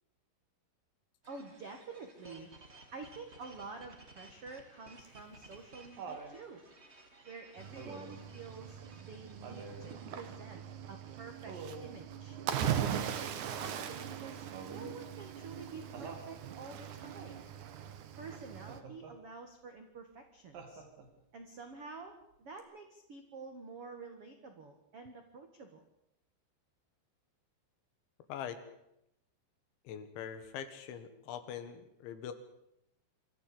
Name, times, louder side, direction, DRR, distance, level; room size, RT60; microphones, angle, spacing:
sound 1, 1.2-10.1, right 2 dB, 25° right, 1.4 m, -58 dB
voice 1, 1.3-2.5 2.9-6.6 7.2-11.5 11.8-12.4 12.9-17.4 18.2-20.8 21.3-25.8, right 4 dB, 90° right, 5 dB, 1.2 m, -49 dB
Laughter, 5.0-6.4 7.8-8.2 9.4-9.9 11.5-12.0 14.5-15.0 15.9-16.3 18.7-19.2 20.5-21.2 22.6-22.7, right 4 dB, 50° right, 3.9 m, -47 dB
Cricket / Waves surf, 7.6-18.8, right 9 dB, 70° right, 1.8 m, -40 dB
voice 2, 28.3-28.6 29.9-32.3, left 8 dB, 75° left, 10 dB, 3.9 m, -43 dB
24.5 x 14.0 x 8.6 m, 0.82 s
omnidirectional pair, 5.6 m